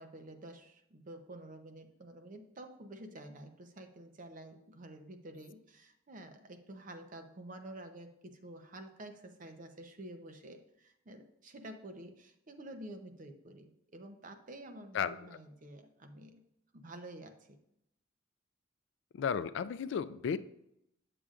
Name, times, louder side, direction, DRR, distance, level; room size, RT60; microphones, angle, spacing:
voice 1, 0.0-16.4 16.7-17.6, right 1 dB, 45° right, 7 dB, 0.7 m, -49 dB
voice 2, 14.9-15.4 19.1-20.4, left 7 dB, 65° left, 14 dB, 0.3 m, -34 dB
8.6 x 6.8 x 2.5 m, 0.79 s
head